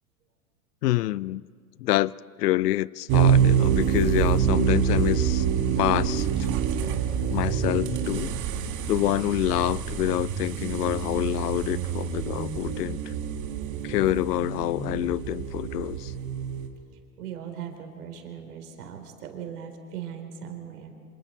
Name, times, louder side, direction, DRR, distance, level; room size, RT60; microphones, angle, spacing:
voice 1, 0.8-1.4 1.8-2.1 2.4-5.5 5.8-6.3 7.3-8.3 8.9-13.0 13.8-16.1, left 16 dB, 85° left, 0.6 m, -27 dB
car out, 3.1-16.7, right 8 dB, 40° right, 2.2 m, -26 dB
voice 2, 9.0-9.4 17.2-20.9, right 8 dB, 75° right, 4.1 m, -39 dB
27.5 x 26.0 x 4.5 m
hypercardioid pair, 125°, 46 cm